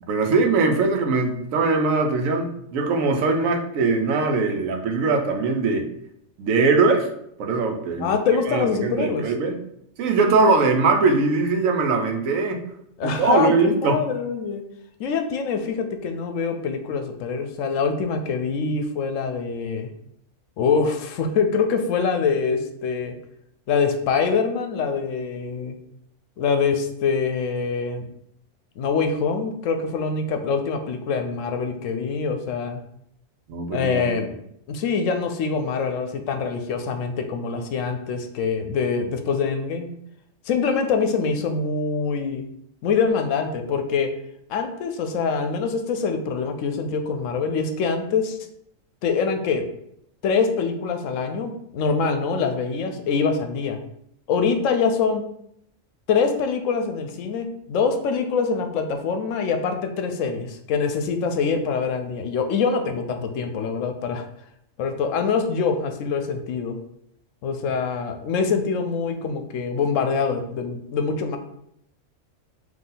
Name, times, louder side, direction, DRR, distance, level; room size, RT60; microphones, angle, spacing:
voice 1, 0.1-5.9 6.4-7.1 7.4-8.1 8.5-9.6 10.0-12.6 13.0-14.0 33.5-34.2, right 3 dB, 85° right, 4 dB, 1.1 m, -21 dB
voice 2, 8.0-9.3 13.0-14.6 15.0-19.9 20.6-23.2 23.7-25.7 26.4-28.0 28.8-32.8 33.7-34.3 34.7-39.9 40.5-42.4 42.8-44.1 44.5-48.4 49.0-49.7 50.2-53.8 54.3-55.2 56.1-64.3 64.8-66.8 67.4-71.4, left 5 dB, 75° left, 7 dB, 0.9 m, -24 dB
4.0 x 2.8 x 3.8 m, 0.73 s
omnidirectional pair, 1.4 m